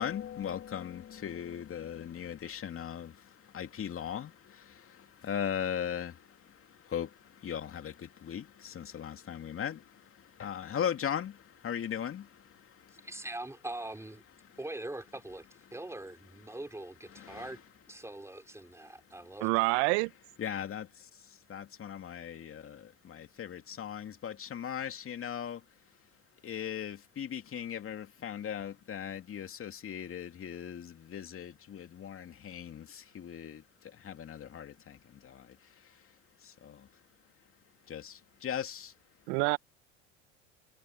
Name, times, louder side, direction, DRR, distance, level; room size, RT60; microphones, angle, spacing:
voice 1, 0.0-3.1 3.5-4.3 5.2-6.1 6.9-7.1 7.4-7.9 8.3-9.8 10.4-11.3 11.6-12.2 17.2-17.4 20.4-20.9 21.5-22.8 23.1-25.6 26.4-32.8 33.1-33.6 34.0-34.7 37.9-38.1 38.4-38.9, left 9 dB, 35° left, 2.7 m, -37 dB
voice 2, 12.9-14.2 14.6-17.6 17.9-19.8, right 2 dB, 5° right, 5.2 m, -43 dB
voice 3, 19.4-20.1 39.3-39.6, right 30 dB, 65° right, 1.5 m, -27 dB
hypercardioid pair, 75°, 38 cm